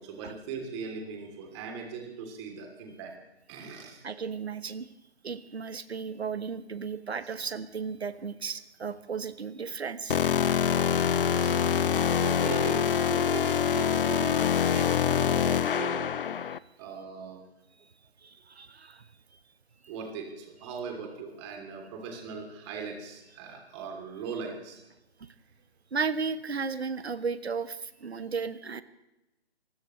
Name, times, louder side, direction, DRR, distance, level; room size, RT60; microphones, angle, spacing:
voice 1, 0.0-3.1 3.5-4.0 7.2-7.4 11.3-11.7 12.0-16.1 16.8-17.4 19.9-24.8, right 5 dB, 25° right, 2 dB, 3.1 m, -39 dB
voice 2, 4.0-4.9 5.2-10.2 17.8-17.9 18.2-19.1 25.2-25.3 25.9-28.8, right 5 dB, 70° right, 13 dB, 1.3 m, -34 dB
sound 1, 10.1-16.6, left 8 dB, 55° left, 0.6 m, -25 dB
25.0 x 16.0 x 3.2 m, 0.95 s
figure-of-eight pair, 145°, 33 cm